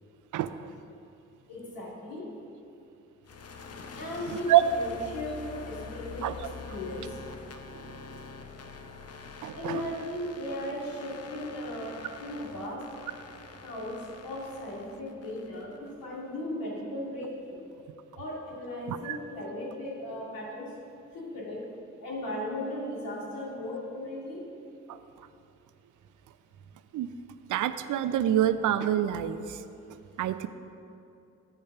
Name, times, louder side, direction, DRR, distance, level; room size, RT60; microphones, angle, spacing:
voice 1, 0.3-0.7 4.5-4.6 6.2-6.4 7.7-7.8 9.4-9.8 18.9-19.2 24.9-25.0 26.9-27.1 27.5-29.6 30.2-30.5, right 12 dB, 60° right, 12 dB, 0.5 m, -26 dB
voice 2, 1.5-2.3 4.0-7.2 9.6-12.8 13.6-17.6 18.2-20.7 21.1-21.6 22.0-24.4 30.0-30.1, left 1 dB, 75° left, -5 dB, 2.2 m, -37 dB
sound 1, 3.2-16.0, left 4 dB, 45° left, 0.8 m, -45 dB
8.0 x 5.4 x 5.9 m, 2.7 s
hypercardioid pair, 40°, 35 cm